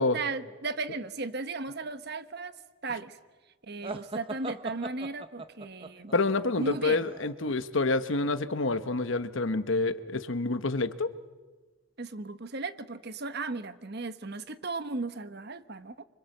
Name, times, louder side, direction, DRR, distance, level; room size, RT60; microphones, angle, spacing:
voice 1, 0.1-2.5 2.8-3.2 3.6-6.1 6.6-7.0 12.0-16.0, right 3 dB, 50° right, 12 dB, 1.1 m, -36 dB
sound 1, 3.8-7.5, right 2 dB, 25° right, 0.9 m, -40 dB
voice 2, 6.1-11.1, left 3 dB, 65° left, 12 dB, 1.1 m, -28 dB
25.5 x 25.0 x 7.9 m, 1.3 s
head